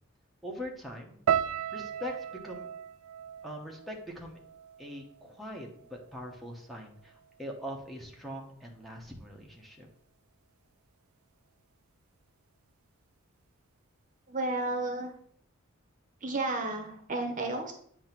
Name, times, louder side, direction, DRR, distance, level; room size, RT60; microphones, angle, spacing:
voice 1, 0.4-1.2 1.7-2.7 3.4-4.4 4.8-9.9, equal, ahead, -1 dB, 1.1 m, -42 dB
sound 1, 1.3-5.5 5.7-6.5 7.1-7.3, right 9 dB, 80° right, 0.3 m, -35 dB
voice 2, 14.3-15.1 16.2-17.7, right 2 dB, 40° right, 4 dB, 0.9 m, -32 dB
8.7 x 2.9 x 5.9 m, 0.62 s
head